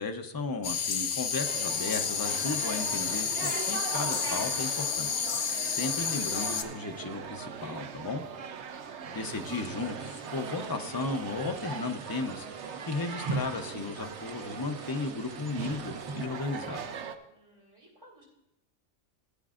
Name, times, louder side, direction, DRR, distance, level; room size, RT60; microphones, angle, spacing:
voice 1, 0.0-5.3 5.6-8.2 9.0-16.8, left 3 dB, 25° left, 4 dB, 0.5 m, -35 dB
sound 1, 0.6-6.6, left 7 dB, 70° left, 1.0 m, -31 dB
sound 2, 1.4-17.2, right 6 dB, 65° right, 1.0 m, -40 dB
sound 3, 9.2-16.3, right 4 dB, 50° right, 0.4 m, -42 dB
voice 2, 17.3-18.2, right 1 dB, 30° right, -3 dB, 3.6 m, -60 dB
16.5 x 8.5 x 2.5 m, 0.90 s
omnidirectional pair, 1.3 m